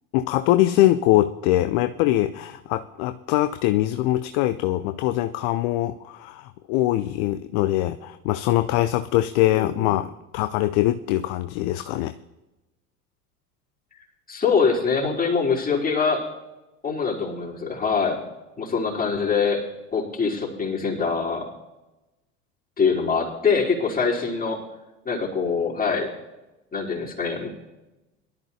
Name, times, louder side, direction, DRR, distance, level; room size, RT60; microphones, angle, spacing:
voice 1, 0.1-12.1, left 15 dB, 45° left, 10 dB, 0.6 m, -22 dB
voice 2, 9.6-9.9 14.3-16.3 16.8-18.2 18.6-19.7 19.9-21.5 22.8-24.6 25.1-26.1 26.7-27.5, left 5 dB, 20° left, -4 dB, 3.7 m, -24 dB
22.0 x 12.5 x 2.8 m, 1.0 s
figure-of-eight pair, 75°, 45 cm